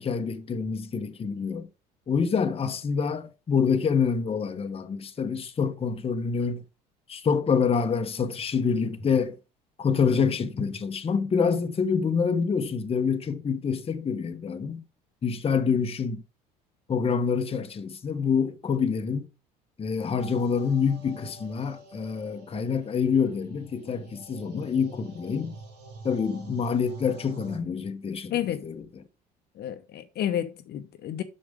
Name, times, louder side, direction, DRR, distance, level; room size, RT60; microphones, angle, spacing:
voice 1, 0.0-1.7 2.1-6.6 7.1-9.3 9.8-14.8 15.2-16.2 16.9-19.3 19.8-25.6 26.0-28.8, left 6 dB, 30° left, 1.0 m, -26 dB
sound 1, 20.2-27.6, right 2 dB, 75° right, 2.3 m, -46 dB
voice 2, 28.3-28.7 29.6-31.2, left 11 dB, 50° left, 1.0 m, -30 dB
6.5 x 6.2 x 5.0 m
hypercardioid pair, 65°, 21 cm